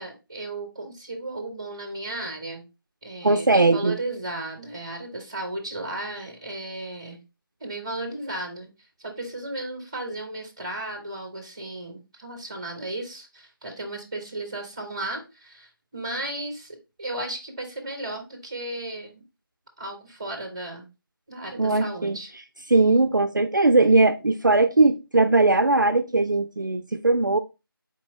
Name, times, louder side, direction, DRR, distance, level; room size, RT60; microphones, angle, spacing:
voice 1, 0.0-2.6 3.0-7.2 7.6-8.7 9.0-19.2 19.8-20.9 21.3-22.3, right 2 dB, 15° right, 0.7 m, -35 dB
voice 2, 3.2-4.0 21.6-22.2 22.7-27.4, right 2 dB, 55° right, 0.4 m, -19 dB
4.3 x 2.9 x 4.0 m
figure-of-eight pair, 165°, 12 cm